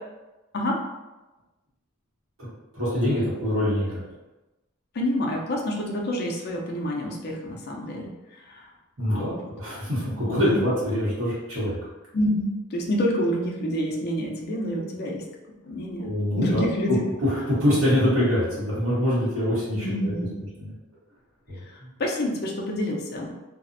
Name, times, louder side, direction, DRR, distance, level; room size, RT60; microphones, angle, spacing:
voice 1, 2.4-4.0 9.0-11.8 16.0-16.6 17.2-20.1 20.6-20.7 21.5-21.9, left 1 dB, 90° right, -9 dB, 1.0 m, -25 dB
voice 2, 4.9-8.6 9.1-9.5 10.1-10.6 12.1-15.2 15.7-17.0 19.7-20.4 22.0-23.3, equal, 50° left, 0 dB, 0.4 m, -28 dB
2.4 x 2.0 x 2.5 m, 1.1 s
head